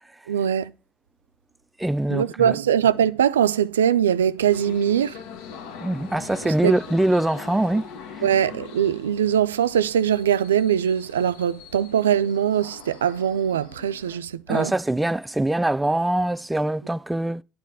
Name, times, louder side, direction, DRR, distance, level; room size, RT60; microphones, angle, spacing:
voice 1, 0.3-0.7 2.1-5.1 6.6-6.7 8.2-14.7, right 9 dB, 85° right, 0.3 m, -21 dB
voice 2, 1.8-2.6 5.8-7.9 8.1-8.2 14.5-17.4, right 1 dB, 10° right, 0.3 m, -23 dB
sound 1, 4.4-14.2, left 6 dB, 70° left, 1.1 m, -42 dB
9.3 x 4.1 x 7.2 m
hypercardioid pair, 65°, 0 cm